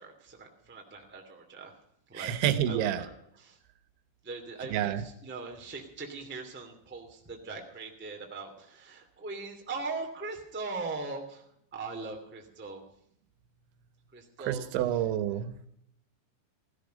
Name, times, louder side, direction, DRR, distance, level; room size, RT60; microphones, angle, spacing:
voice 1, 0.0-1.7 2.1-2.3 2.7-3.6 4.2-12.8 14.1-14.7, right 3 dB, 5° right, 2 dB, 1.4 m, -40 dB
voice 2, 2.1-3.0 4.7-5.0 14.4-15.5, right 11 dB, 80° right, 11 dB, 3.5 m, -28 dB
16.0 x 16.0 x 5.2 m, 0.72 s
omnidirectional pair, 5.2 m